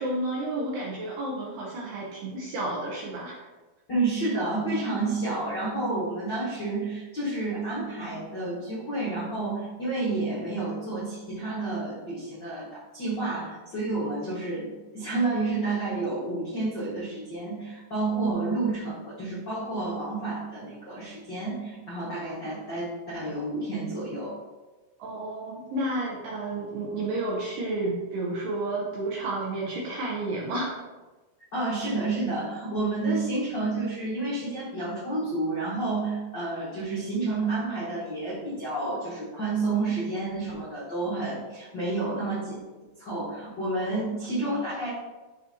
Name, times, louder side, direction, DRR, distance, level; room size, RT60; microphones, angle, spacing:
voice 1, 0.0-3.5 25.0-30.8, right 2 dB, 75° right, -4 dB, 2.1 m, -31 dB
voice 2, 3.9-24.3 31.5-42.6 43.0-44.9, right 2 dB, 90° left, -9 dB, 0.9 m, -30 dB
11.5 x 4.2 x 2.8 m, 1.2 s
omnidirectional pair, 5.1 m